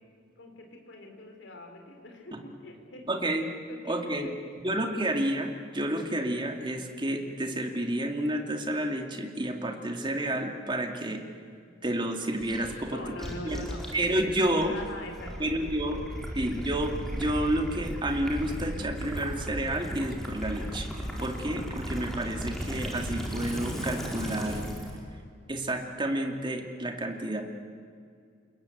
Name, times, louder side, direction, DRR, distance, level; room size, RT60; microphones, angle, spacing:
voice 1, 0.4-3.1 3.7-4.3 12.9-16.3, left 1 dB, 60° left, 3 dB, 3.9 m, -43 dB
voice 2, 3.1-3.5 3.8-4.3 4.6-11.2 11.8-13.0 13.4-13.7 13.9-14.7 15.4-16.0 16.3-24.7 25.5-27.4, right 1 dB, 25° right, 3 dB, 2.3 m, -30 dB
Gurgling / Liquid, 12.4-25.0, equal, ahead, 4.5 m, -36 dB
29.0 x 21.0 x 8.5 m, 2.3 s
head